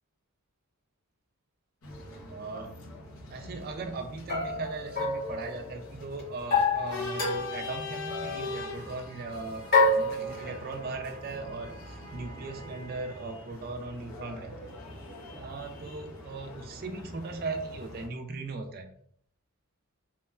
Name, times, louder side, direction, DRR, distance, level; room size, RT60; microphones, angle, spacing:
sound 1, 1.8-18.1, left 2 dB, 70° left, 0.7 m, -43 dB
sound 2, 1.9-2.0 4.3-5.9 6.5-7.7 8.1-8.4 9.7-10.7, left 3 dB, 45° left, 1.0 m, -27 dB
voice 1, 2.3-2.7 3.3-14.5 15.3-18.9, right 3 dB, 45° right, 6 dB, 0.3 m, -38 dB
2.9 x 2.1 x 2.3 m, 0.64 s
head